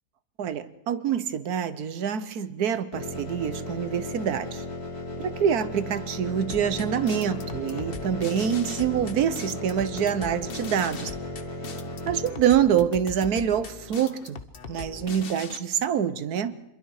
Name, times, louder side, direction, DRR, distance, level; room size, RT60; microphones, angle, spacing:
voice 1, 0.4-4.6 5.2-11.1 12.1-14.4 14.7-16.6, right 8 dB, 80° right, 13 dB, 1.4 m, -26 dB
sound 1, 2.9-12.3, left 1 dB, 75° left, 4.4 m, -36 dB
sound 2, 6.5-15.6, left 5 dB, 40° left, 1.2 m, -40 dB
26.0 x 22.5 x 4.8 m, 0.84 s
omnidirectional pair, 1.6 m